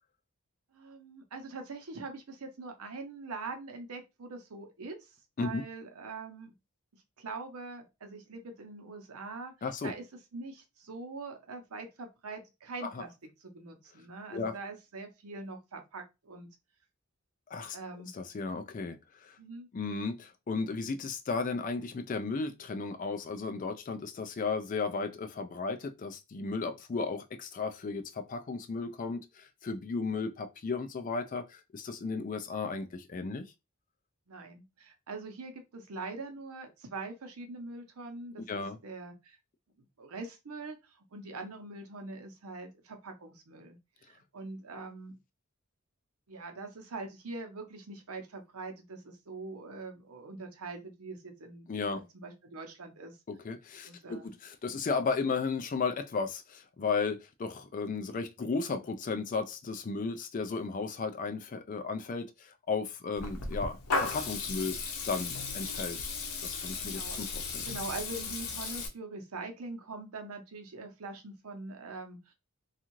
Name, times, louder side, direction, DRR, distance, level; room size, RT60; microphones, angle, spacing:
voice 1, 0.7-6.5 6.9-9.5 9.8-10.0 10.3-13.1 13.4-16.5 17.7-18.1 19.4-19.7 32.6-32.9 34.3-39.4 40.0-43.8 44.0-45.2 46.3-53.1 53.9-54.3 66.8-67.2 67.7-72.3, right 3 dB, 80° right, 0.7 m, -43 dB
voice 2, 9.6-9.9 12.8-13.0 14.3-14.6 17.5-17.8 18.1-19.4 19.7-33.5 38.5-38.8 51.7-52.0 53.3-64.8 65.1-66.1 66.4-67.6, left 4 dB, 35° left, 0.3 m, -34 dB
Water tap faucet / Liquid, 63.2-68.9, left 4 dB, 85° left, 0.7 m, -35 dB
2.6 x 2.4 x 2.9 m
head